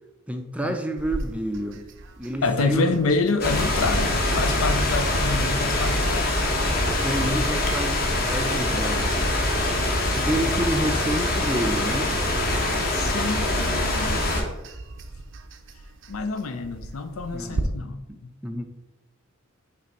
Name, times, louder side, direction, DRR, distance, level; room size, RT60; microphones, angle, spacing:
voice 1, 0.3-1.8 2.2-3.2 6.9-9.3 10.1-12.2 17.3-18.2 18.4-18.6, right 1 dB, 5° right, 5 dB, 0.4 m, -29 dB
sound 1, 1.0-17.6, right 2 dB, 55° right, 0.5 m, -41 dB
voice 2, 2.4-6.4 12.8-14.6 16.1-18.3, left 3 dB, 75° left, 10 dB, 0.5 m, -27 dB
sound 2, 3.4-14.4, left 1 dB, 45° left, 1.1 m, -24 dB
5.6 x 3.3 x 5.2 m, 0.97 s
head